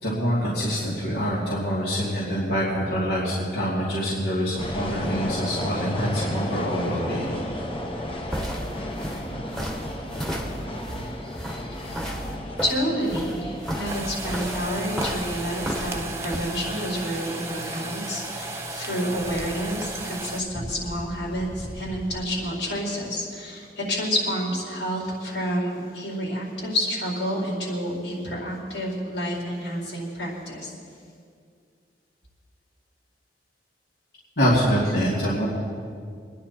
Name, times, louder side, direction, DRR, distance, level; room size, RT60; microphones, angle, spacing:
voice 1, 0.0-7.4 34.4-35.5, equal, 65° left, -8 dB, 2.9 m, -25 dB
sound 1, 4.6-22.2, left 1 dB, 30° left, 1.3 m, -35 dB
sound 2, 7.9-16.5, equal, 5° left, 1.5 m, -33 dB
voice 2, 12.6-30.7, equal, 85° left, -3 dB, 4.6 m, -29 dB
sound 3, 13.8-20.4, right 2 dB, 15° right, 1.0 m, -34 dB
25.5 x 10.5 x 4.4 m, 2.2 s
head